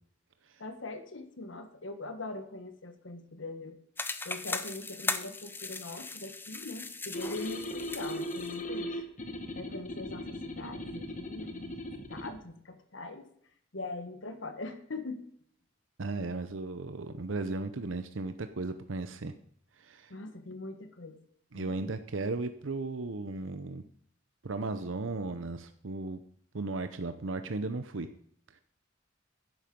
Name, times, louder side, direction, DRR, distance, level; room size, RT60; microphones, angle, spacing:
voice 1, 0.6-3.8 4.2-8.9 9.5-13.3 13.7-15.2 20.1-21.2 21.5-21.9, left 2 dB, 75° left, 8 dB, 1.4 m, -42 dB
sound 1, 4.0-8.6, left 3 dB, 10° left, 0.7 m, -38 dB
sound 2, 7.1-12.4, left 1 dB, 40° left, 1.6 m, -38 dB
voice 2, 16.0-19.3 19.8-20.1 21.5-23.8 24.4-26.2 26.5-28.1 28.5-28.6, right 3 dB, 75° right, 9 dB, 0.8 m, -35 dB
12.5 x 10.5 x 5.3 m, 0.63 s
head